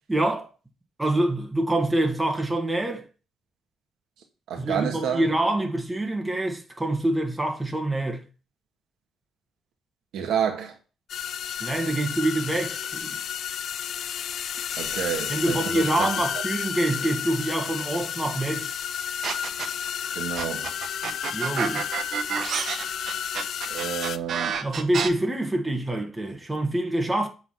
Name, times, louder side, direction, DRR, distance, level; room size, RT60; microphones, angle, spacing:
voice 1, 0.1-0.5 1.0-3.0 4.6-8.2 11.6-13.2 15.3-18.7 21.3-21.9 24.6-27.3, right 1 dB, 10° right, 1.7 m, -26 dB
voice 2, 4.5-5.3 10.1-10.8 14.8-16.2 20.1-20.8 23.7-24.6, right 8 dB, 80° right, 1.4 m, -29 dB
sound 1, 11.1-24.2, left 9 dB, 65° left, 0.4 m, -32 dB
sound 2, 19.2-19.9 20.4-25.1, right 7 dB, 60° right, 0.9 m, -29 dB
8.3 x 4.0 x 5.8 m
cardioid pair, 90°, 0 cm